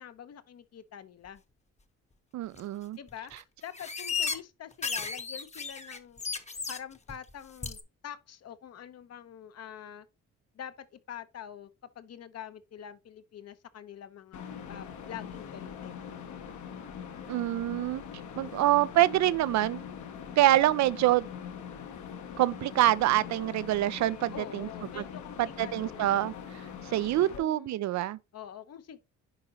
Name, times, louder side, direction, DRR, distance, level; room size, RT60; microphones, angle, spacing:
voice 1, 0.0-1.4 3.0-3.3 3.6-6.2 6.7-10.1 10.5-11.7 11.9-16.0 18.3-18.6 24.3-26.5 27.3-27.8 28.3-29.0, left 9 dB, 55° left, 0.9 m, -45 dB
voice 2, 2.3-3.0 17.3-18.0 18.4-19.8 20.4-21.3 22.4-24.7 25.0-25.1 25.4-26.3 26.8-28.2, right 14 dB, 65° right, 0.5 m, -26 dB
sound 1, 2.5-2.6 3.1-3.4 3.7-4.4 4.7-6.8 7.1-7.3 7.6-7.8, left 5 dB, 20° left, 1.0 m, -34 dB
sound 2, 14.3-27.4, left 7 dB, 75° left, 1.4 m, -42 dB
10.5 x 3.8 x 2.9 m
cardioid pair, 90°, 30 cm